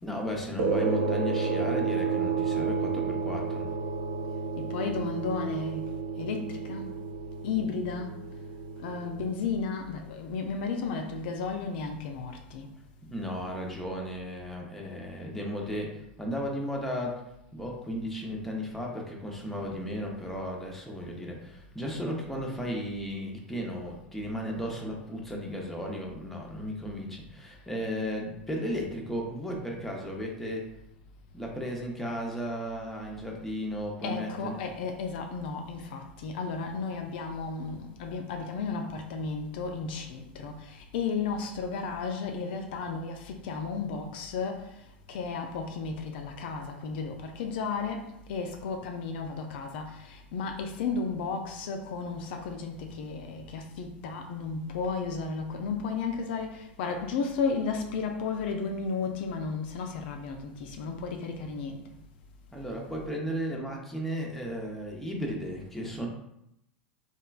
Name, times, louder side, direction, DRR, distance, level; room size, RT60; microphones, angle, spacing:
voice 1, 0.0-3.7 13.1-15.9 16.2-17.2 17.5-30.6 31.3-34.6 62.5-66.1, equal, 5° left, 0.6 m, -35 dB
sound 1, 0.6-9.3, right 5 dB, 55° right, 0.5 m, -31 dB
voice 2, 4.6-5.9 6.2-6.9 7.4-8.1 8.8-12.7 34.0-62.0, left 5 dB, 65° left, 0.3 m, -33 dB
3.0 x 2.3 x 2.3 m
hypercardioid pair, 90°, 6 cm